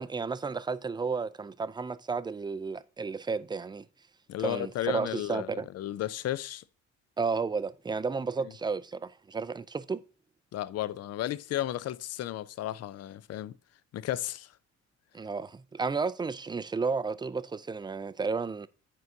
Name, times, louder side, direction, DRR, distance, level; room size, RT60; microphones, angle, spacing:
voice 1, 0.0-3.9 4.4-5.7 7.2-10.0 15.1-18.7, right 4 dB, 15° right, 0.3 m, -32 dB
voice 2, 4.3-6.6 10.5-13.5 13.9-14.5, left 13 dB, 55° left, 0.5 m, -34 dB
10.5 x 4.6 x 2.7 m
cardioid pair, 90°, 30 cm